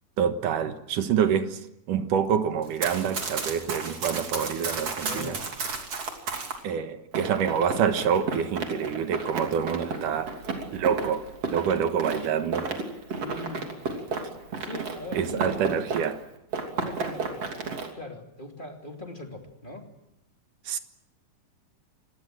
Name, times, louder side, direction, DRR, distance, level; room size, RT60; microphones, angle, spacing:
voice 1, 0.2-1.6 1.9-5.4 6.6-10.4 10.7-11.2 11.5-12.8 15.1-16.2 20.7-20.8, right 7 dB, 70° right, 2.8 m, -26 dB
Run, 2.6-6.6 7.1-16.2 16.5-17.9, right 4 dB, 45° right, 3.8 m, -33 dB
voice 2, 5.0-5.5 13.2-13.6 14.6-15.8 16.7-19.9, left 2 dB, 15° left, 2.5 m, -41 dB
27.0 x 20.5 x 7.9 m
omnidirectional pair, 4.1 m